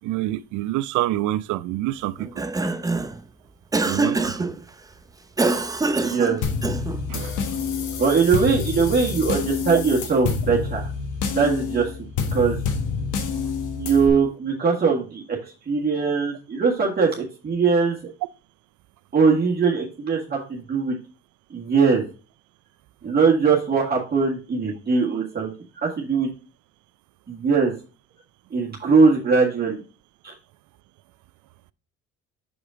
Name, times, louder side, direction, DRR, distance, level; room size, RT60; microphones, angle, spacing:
voice 1, 0.0-2.4 3.8-4.5 7.1-7.4 7.7-7.9, right 15 dB, 70° right, 0.5 m, -27 dB
Cough, 2.2-3.2 3.7-4.5 5.4-7.0, right 3 dB, 10° right, 0.5 m, -24 dB
voice 2, 6.0-6.4 8.0-10.9 11.3-11.9 12.3-12.6 13.8-18.0 19.1-21.0 21.5-22.0 23.0-26.3 27.3-27.7 28.5-29.8 30.2-30.3, right 5 dB, 30° right, 1.7 m, -21 dB
sound 1, 6.4-14.1, left 5 dB, 70° left, 1.3 m, -28 dB
6.2 x 4.9 x 3.7 m
supercardioid pair, 80°, 31 cm